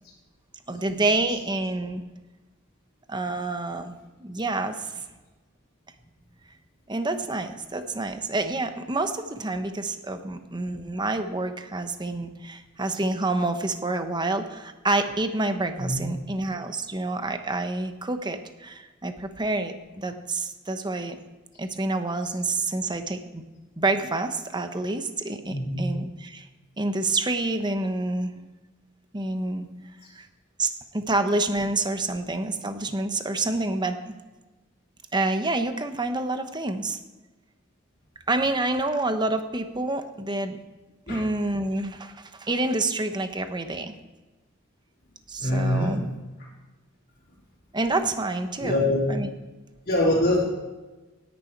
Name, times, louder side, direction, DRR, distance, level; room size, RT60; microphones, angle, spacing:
voice 1, 0.7-2.0 3.1-3.9 4.2-5.0 6.9-21.2 21.6-23.4 23.8-26.5 26.8-28.3 29.1-29.7 30.1-30.3 30.6-34.0 35.1-37.0 38.3-40.6 41.1-44.0 45.3-46.0 47.7-48.8 49.1-49.3, right 2 dB, 20° right, 8 dB, 1.0 m, -28 dB
voice 2, 15.8-16.1 22.2-22.3 25.4-25.8 30.0-30.1 41.1-41.2 45.4-46.0 46.4-46.5 48.6-49.0 49.8-50.4, left 1 dB, 45° left, -11 dB, 4.1 m, -24 dB
17.5 x 10.5 x 4.6 m, 1.2 s
head